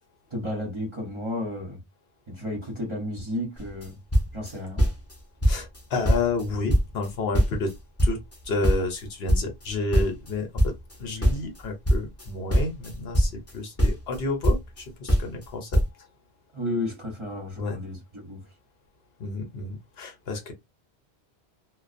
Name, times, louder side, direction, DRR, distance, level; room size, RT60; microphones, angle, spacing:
voice 1, 0.3-1.8 2.3-3.9 4.3-4.9 16.5-18.4, left 1 dB, 30° right, 0.8 m, -32 dB
sound 1, 3.6-3.9 4.1-5.1 5.4-5.8 6.0-7.7 8.0-10.9 11.2-13.5 13.8-14.8 15.1-15.5 15.7-15.9, equal, 15° left, 0.6 m, -23 dB
voice 2, 5.4-7.7 8.0-8.2 8.4-10.7 11.0-15.8 17.6-17.8 19.2-20.5, left 3 dB, 70° left, 0.9 m, -30 dB
2.3 x 2.2 x 2.5 m
omnidirectional pair, 1.1 m